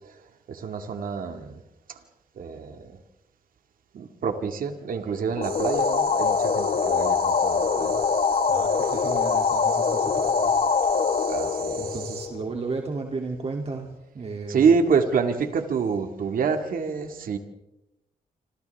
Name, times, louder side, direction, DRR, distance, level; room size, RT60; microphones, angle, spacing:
voice 1, 0.0-1.6 1.9-2.0 2.4-3.0 3.9-8.0 11.3-11.9 14.5-17.4, right 5 dB, 65° right, 2.1 m, -27 dB
sound 1, 5.4-12.7, left 5 dB, 50° left, 1.6 m, -24 dB
sound 2, 5.4-12.3, right 9 dB, 85° right, 2.3 m, -40 dB
voice 2, 8.5-10.5 11.8-14.7, right 3 dB, 40° right, 2.8 m, -34 dB
27.5 x 27.0 x 3.6 m
cardioid pair, 95°, 15 cm